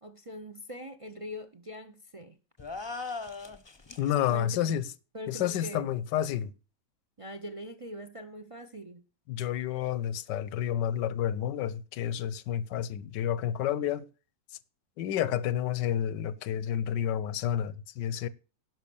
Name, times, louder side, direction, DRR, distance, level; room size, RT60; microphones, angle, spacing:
voice 1, 0.0-2.4 4.3-4.7 5.1-5.9 7.2-9.0, equal, 40° right, 0.4 m, -42 dB
sound 1, 2.6-4.1, left 3 dB, 25° left, 0.6 m, -38 dB
voice 2, 4.0-4.8 5.3-6.5 9.3-14.1 15.0-18.3, left 10 dB, 90° left, 1.4 m, -30 dB
11.0 x 5.9 x 6.9 m
omnidirectional pair, 1.9 m